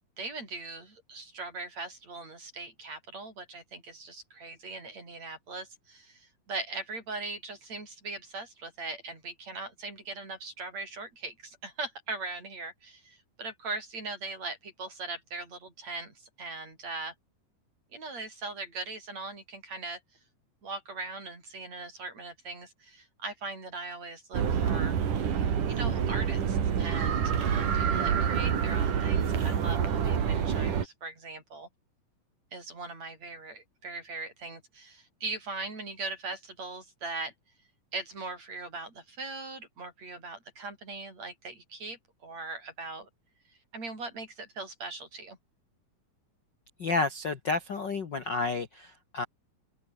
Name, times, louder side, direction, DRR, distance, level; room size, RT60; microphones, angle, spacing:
voice 1, 0.2-17.1 17.9-20.0 20.6-25.0 25.7-31.7 32.5-37.3 37.9-43.1 43.7-45.4, right 3 dB, 50° right, 8.6 m, -40 dB
sound 1, 24.3-30.9, right 8 dB, 70° right, 4.2 m, -27 dB
voice 2, 46.8-49.3, left 3 dB, 45° left, 1.7 m, -30 dB
open air
omnidirectional pair, 3.8 m